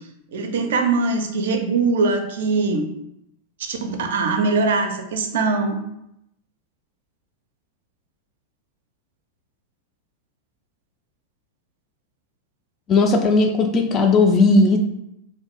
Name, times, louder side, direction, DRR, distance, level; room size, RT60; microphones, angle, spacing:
voice 1, 0.3-2.8 3.7-5.8, right 3 dB, 60° right, 5 dB, 0.4 m, -22 dB
voice 2, 12.9-14.8, left 3 dB, 30° left, 4 dB, 0.3 m, -16 dB
2.6 x 2.4 x 3.6 m, 0.81 s
figure-of-eight pair, 90°, 0 cm